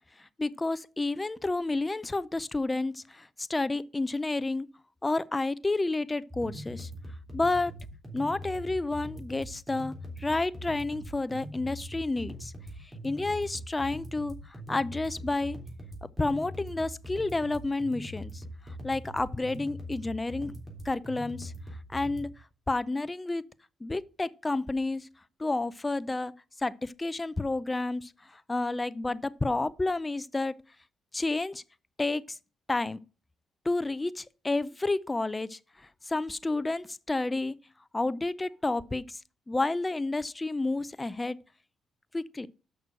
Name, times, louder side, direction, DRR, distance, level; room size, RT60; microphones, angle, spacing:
voice 1, 0.2-4.7 5.0-6.9 7.3-7.7 8.1-12.5 13.0-14.4 14.7-15.6 16.2-18.4 18.8-20.5 20.8-21.5 21.9-22.3 22.7-23.5 23.8-25.1 25.4-26.3 26.6-30.6 31.1-31.6 32.0-32.4 32.7-33.0 33.6-35.6 36.1-37.5 37.9-39.2 39.5-41.4 42.1-42.5, left 2 dB, 20° left, 0.5 m, -30 dB
sound 1, 6.3-22.3, equal, 15° right, 3.4 m, -42 dB
6.7 x 6.1 x 6.2 m
cardioid pair, 90°, 0 cm